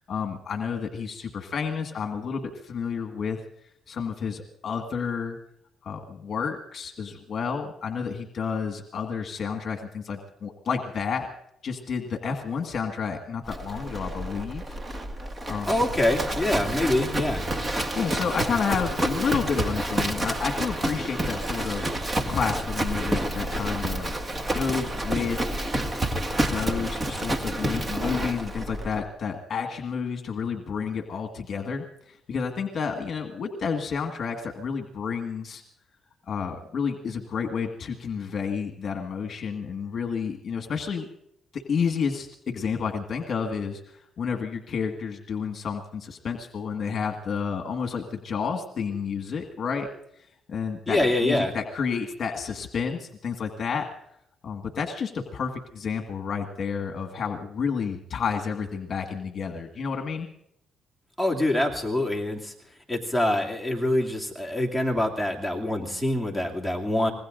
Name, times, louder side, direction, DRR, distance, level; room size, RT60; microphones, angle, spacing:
voice 1, 0.1-3.4 3.9-5.4 5.8-11.3 11.6-14.8 15.5-15.7 18.0-24.1 24.5-25.4 26.4-35.6 36.3-41.1 41.5-49.9 50.2-53.9 54.4-60.3, left 6 dB, 55° left, 4 dB, 1.7 m, -30 dB
Livestock farm animals working animals, 13.5-29.0, right 1 dB, 25° right, 1.9 m, -29 dB
voice 2, 15.7-17.4 50.9-51.5 61.2-62.5 62.9-67.1, left 1 dB, ahead, 0 dB, 2.6 m, -25 dB
25.5 x 21.0 x 2.6 m, 0.75 s
cardioid pair, 90°, 0 cm